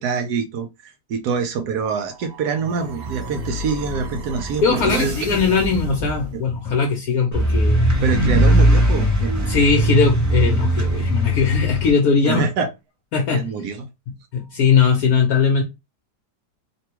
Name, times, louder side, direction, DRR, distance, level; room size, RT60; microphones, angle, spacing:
voice 1, 0.0-5.1 6.3-6.4 8.0-9.6 12.2-12.7 13.3-13.9, right 5 dB, 75° right, 1.1 m, -25 dB
sound 1, 1.8-6.8, right 1 dB, 50° right, 0.8 m, -32 dB
voice 2, 4.6-7.8 9.5-12.4 13.1-13.5 14.3-15.6, left 5 dB, 70° left, 1.1 m, -19 dB
sound 2, 7.3-11.9, equal, 20° right, 0.5 m, -18 dB
3.2 x 2.2 x 2.8 m
omnidirectional pair, 1.8 m